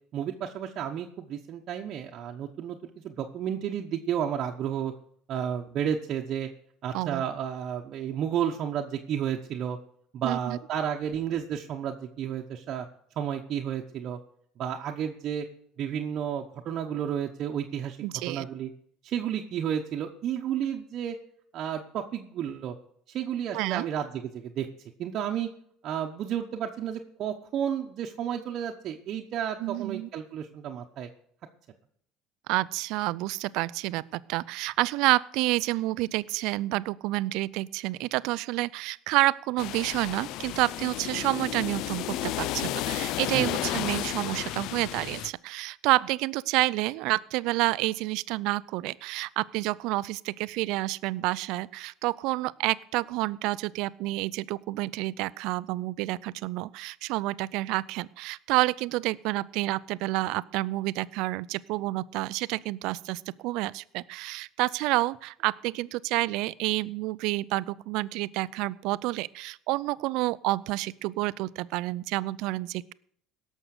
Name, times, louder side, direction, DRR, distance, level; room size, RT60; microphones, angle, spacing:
voice 1, 0.1-4.9 5.3-6.5 6.8-9.8 10.1-12.9 13.2-14.2 14.6-15.5 15.8-18.0 18.3-18.7 19.0-21.2 21.5-22.7 23.1-24.7 25.0-25.5 25.8-31.1 43.3-43.5, right 9 dB, 55° right, 1 dB, 1.0 m, -32 dB
voice 2, 10.2-10.6 18.0-18.5 23.5-23.9 29.6-30.1 32.5-72.9, right 19 dB, 70° right, 19 dB, 0.4 m, -29 dB
sound 1, 39.6-45.3, left 13 dB, 65° left, 0.5 m, -32 dB
17.0 x 6.5 x 6.5 m, 0.65 s
supercardioid pair, 90°, 0 cm